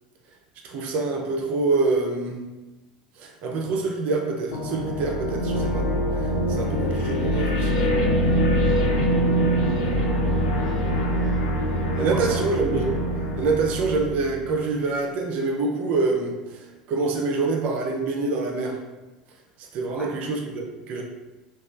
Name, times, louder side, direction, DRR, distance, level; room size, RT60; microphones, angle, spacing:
voice 1, 0.6-2.4 3.2-5.9 6.2-7.9 12.0-12.9 13.4-18.8 19.6-21.0, right 3 dB, 45° right, 1 dB, 0.5 m, -26 dB
sound 1, 4.5-14.7, equal, 65° left, 0.4 m, -24 dB
voice 2, 8.8-9.6 10.6-12.8 19.9-20.1, equal, 5° left, -5 dB, 0.9 m, -40 dB
2.9 x 2.3 x 2.4 m, 1.1 s
figure-of-eight pair, 70°, 3 cm